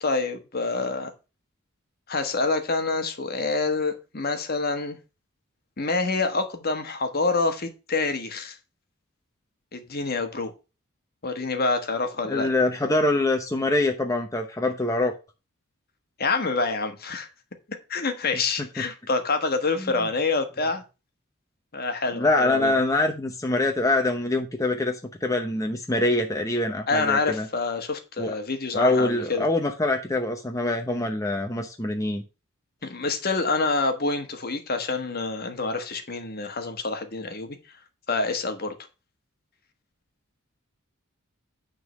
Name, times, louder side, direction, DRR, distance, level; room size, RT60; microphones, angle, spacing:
voice 1, 0.0-1.1 2.1-5.0 5.8-8.6 9.7-10.5 11.2-12.5 16.2-17.3 17.9-20.8 21.7-22.7 26.9-29.5 32.8-37.6 38.1-38.7, left 3 dB, 45° left, 1.3 m, -27 dB
voice 2, 12.3-15.1 19.8-19.9 22.1-27.5 28.2-28.3 28.7-32.2, left 2 dB, 15° left, 0.8 m, -24 dB
9.5 x 3.8 x 6.2 m
head